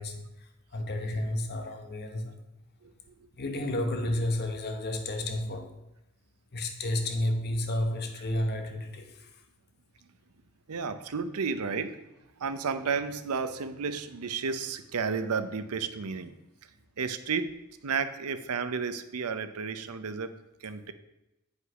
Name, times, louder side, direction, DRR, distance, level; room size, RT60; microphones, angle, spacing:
voice 1, 0.0-2.3 3.4-5.7 6.5-9.3, left 1 dB, 45° left, 0.9 m, -31 dB
voice 2, 10.7-12.0 12.4-16.3 17.0-17.5 17.8-20.3 20.6-20.9, right 5 dB, 80° right, 0.6 m, -32 dB
8.1 x 5.3 x 4.8 m
head